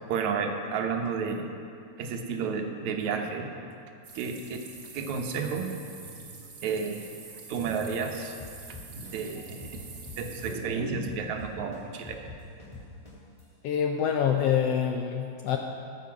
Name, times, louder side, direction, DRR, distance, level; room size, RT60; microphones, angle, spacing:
voice 1, 0.1-1.5 2.0-3.5 4.2-4.6 4.9-6.0 6.6-7.0 7.5-8.3 8.7-12.2, right 5 dB, 80° right, 3 dB, 2.3 m, -32 dB
sound 1, 4.0-10.6, right 4 dB, 40° right, 1.6 m, -47 dB
sound 2, 8.4-10.7 11.0-13.4, left 3 dB, 25° left, 0.7 m, -44 dB
voice 2, 13.6-15.6, left 8 dB, 80° left, 3 dB, 1.4 m, -26 dB
13.0 x 8.2 x 5.9 m, 2.5 s
omnidirectional pair, 3.3 m